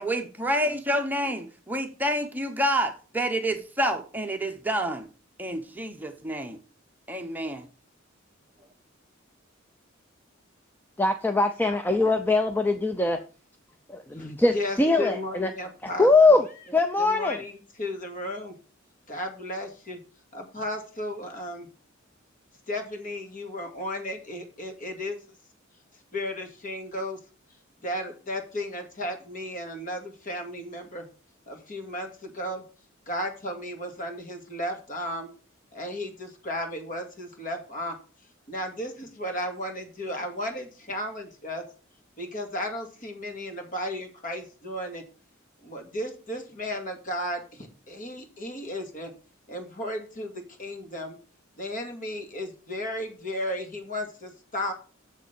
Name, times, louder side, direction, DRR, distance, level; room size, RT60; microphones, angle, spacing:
voice 1, 0.0-5.1 5.4-6.6 7.1-7.6, equal, 10° right, 4 dB, 0.9 m, -28 dB
voice 2, 11.0-13.2 13.9-15.5 16.0-17.4, left 2 dB, 10° left, 7 dB, 0.6 m, -22 dB
voice 3, 14.1-16.4 17.0-18.5 19.1-20.0 20.3-21.7 22.7-25.2 26.1-27.2 27.8-31.1 31.5-32.6 33.1-35.3 35.7-38.0 38.5-41.6 42.2-45.0 45.6-49.1 49.5-51.2 51.6-54.7, left 1 dB, 40° left, 4 dB, 2.2 m, -34 dB
7.4 x 6.7 x 6.8 m, 0.37 s
head